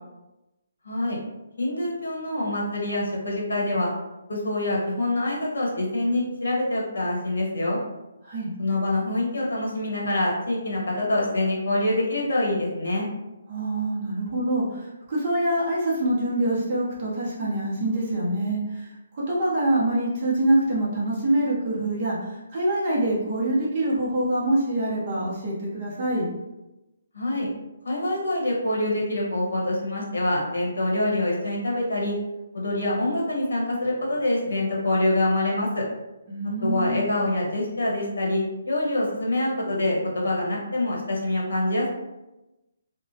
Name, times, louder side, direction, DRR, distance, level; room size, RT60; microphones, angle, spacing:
voice 1, 0.8-1.2 1.6-3.9 4.3-7.8 8.6-13.1 27.1-27.5 27.8-32.2 32.5-35.9 36.6-41.9, left 1 dB, 90° left, -3 dB, 1.0 m, -25 dB
voice 2, 13.5-26.3 36.3-37.0, right 1 dB, 25° right, -7 dB, 0.7 m, -25 dB
2.8 x 2.1 x 2.7 m, 0.99 s
hypercardioid pair, 175°, 0 cm